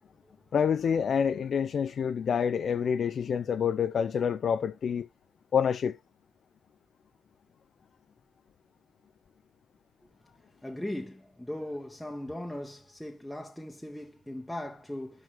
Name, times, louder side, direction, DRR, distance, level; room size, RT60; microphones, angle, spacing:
voice 1, 0.5-5.1 5.5-5.9, left 7 dB, 45° left, 0.4 m, -27 dB
voice 2, 10.6-15.2, left 1 dB, 5° left, 1.0 m, -38 dB
12.0 x 5.9 x 3.0 m
figure-of-eight pair, 50°, 0 cm